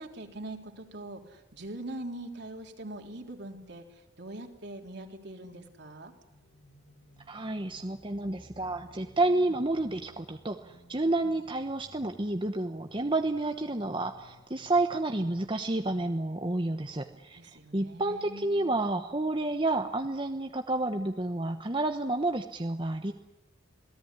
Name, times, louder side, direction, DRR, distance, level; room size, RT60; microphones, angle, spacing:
voice 1, 0.0-6.1 17.3-18.8, right 1 dB, 55° right, 3 dB, 3.6 m, -42 dB
sound 1, 6.3-16.1, left 1 dB, 55° left, 6.9 m, -57 dB
voice 2, 7.3-17.4 17.7-23.1, right 2 dB, 25° right, 5 dB, 1.1 m, -30 dB
27.5 x 18.5 x 9.9 m, 0.96 s
head